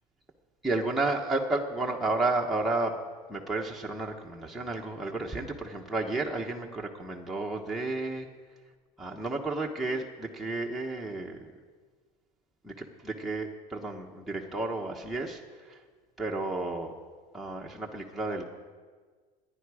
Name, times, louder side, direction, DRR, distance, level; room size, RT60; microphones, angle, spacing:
voice 1, 0.6-3.0 3.3-8.3 9.0-11.5 12.6-15.8 16.2-16.9 17.3-18.4, right 2 dB, ahead, -2 dB, 1.1 m, -32 dB
25.5 x 10.5 x 4.9 m, 1.5 s
cardioid pair, 150°, 19 cm